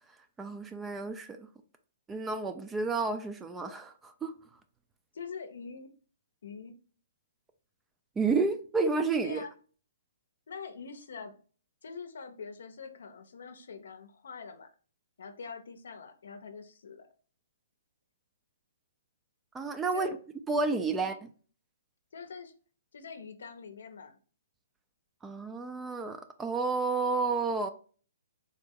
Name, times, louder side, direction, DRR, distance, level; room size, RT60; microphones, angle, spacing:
voice 1, 0.4-1.5 2.1-4.3 8.2-9.5 19.5-20.1 20.5-21.3 25.2-27.7, right 4 dB, 10° right, 0.3 m, -30 dB
voice 2, 5.1-5.9 6.4-6.7 9.2-9.5 10.5-11.3 11.8-14.7 15.2-17.1 19.9-20.2 20.9-21.1 22.1-22.5 22.9-24.2, left 5 dB, 75° left, 0.6 m, -44 dB
3.5 x 2.0 x 3.6 m
hypercardioid pair, 140°, 0 cm